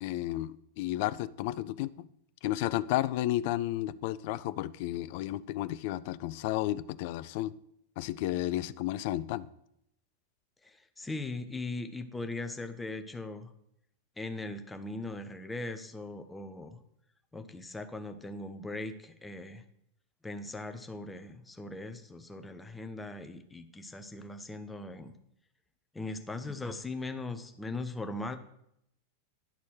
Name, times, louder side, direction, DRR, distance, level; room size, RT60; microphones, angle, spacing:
voice 1, 0.0-2.1 2.4-7.5 8.0-9.5, left 15 dB, 50° left, 16 dB, 0.4 m, -32 dB
voice 2, 10.6-13.5 14.2-16.8 17.3-19.6 20.2-25.1 25.9-28.4, left 2 dB, 10° left, 7 dB, 0.8 m, -39 dB
11.5 x 4.2 x 6.2 m, 0.75 s
figure-of-eight pair, 90°, 0 cm